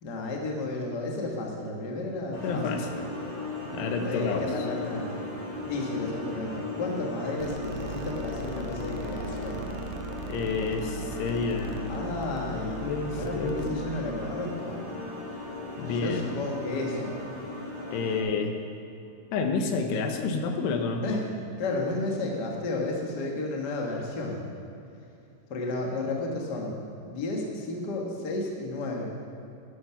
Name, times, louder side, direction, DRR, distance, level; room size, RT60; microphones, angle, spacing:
voice 1, 0.0-2.6 4.0-5.2 5.6-9.7 10.5-10.7 11.9-12.9 13.1-14.8 15.9-17.1 21.0-21.2 21.6-24.4 25.5-26.7 27.0-29.1, left 2 dB, 65° left, 0 dB, 1.0 m, -32 dB
sound 1, 2.3-18.2, left 2 dB, 45° left, 3.4 m, -37 dB
voice 2, 2.4-2.9 3.7-4.7 10.3-12.1 12.8-13.9 15.8-16.2 17.9-18.6 19.3-21.2, left 4 dB, 85° left, 5 dB, 3.1 m, -29 dB
sound 2, 7.4-14.2, right 4 dB, 85° right, 2.7 m, -40 dB
12.0 x 11.0 x 5.8 m, 2.7 s
omnidirectional pair, 4.8 m